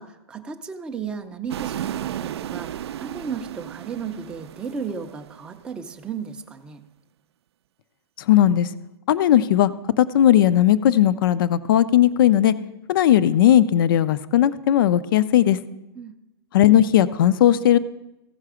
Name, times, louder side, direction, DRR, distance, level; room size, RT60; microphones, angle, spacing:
voice 1, 0.0-6.8 15.9-16.2, right 6 dB, 5° right, 4 dB, 0.4 m, -34 dB
sound 1, 1.5-5.8, right 11 dB, 80° right, 0.4 m, -34 dB
voice 2, 8.3-8.7 9.1-9.7 10.0-12.5 12.9-15.6 16.5-17.8, left 11 dB, 55° left, 16 dB, 0.4 m, -17 dB
15.0 x 5.7 x 4.9 m, 0.98 s
hypercardioid pair, 165°, 14 cm